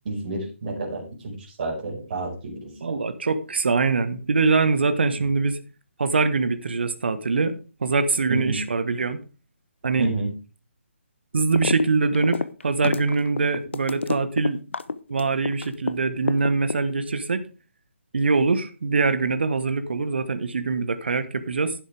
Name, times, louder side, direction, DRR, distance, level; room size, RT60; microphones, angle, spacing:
voice 1, 0.1-2.6 8.3-8.6 10.0-10.3, right 2 dB, 40° right, 5.5 m, -29 dB
voice 2, 2.8-5.6 6.0-9.2 9.8-10.1 11.3-14.6 15.1-17.4 18.1-21.7, right 4 dB, 55° right, 1.4 m, -23 dB
sound 1, 11.6-11.8 12.1-15.9 16.3-17.2, left 4 dB, 65° left, 0.8 m, -27 dB
11.0 x 10.5 x 3.6 m
figure-of-eight pair, 145°, 7 cm